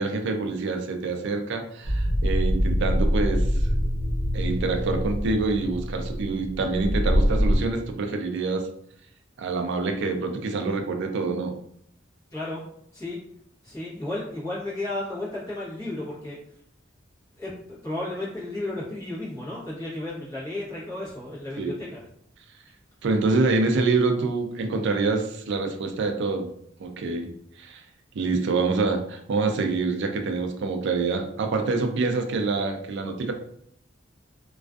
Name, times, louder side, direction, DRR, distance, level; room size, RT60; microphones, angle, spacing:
voice 1, 0.0-3.5 4.3-8.7 9.4-11.5 21.6-21.7 23.0-26.5 26.8-27.3 27.6-27.8 28.1-33.3, right 3 dB, 65° right, 5 dB, 0.4 m, -26 dB
sound 1, 1.9-7.6, equal, 85° left, 0.9 m, -24 dB
voice 2, 12.3-12.6 12.9-13.2 13.6-16.4 17.4-22.1, left 2 dB, 20° left, -9 dB, 0.9 m, -33 dB
2.4 x 2.3 x 2.3 m, 0.69 s
head